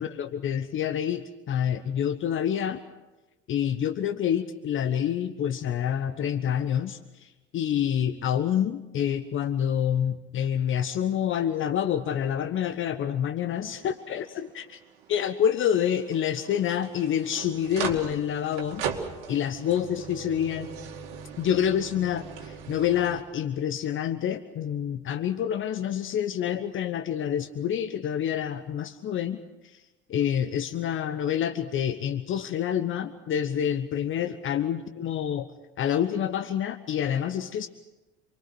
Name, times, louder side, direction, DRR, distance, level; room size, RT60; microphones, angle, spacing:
voice 1, 0.0-2.8 3.5-14.8 15.1-18.9 19.3-20.7 21.4-29.8 30.1-35.5 35.8-37.7, left 9 dB, 35° left, 11 dB, 1.1 m, -27 dB
sound 1, 13.5-23.2, right 7 dB, 60° right, 2.4 m, -39 dB
28.0 x 22.0 x 6.3 m, 1.1 s
figure-of-eight pair, 65°, 34 cm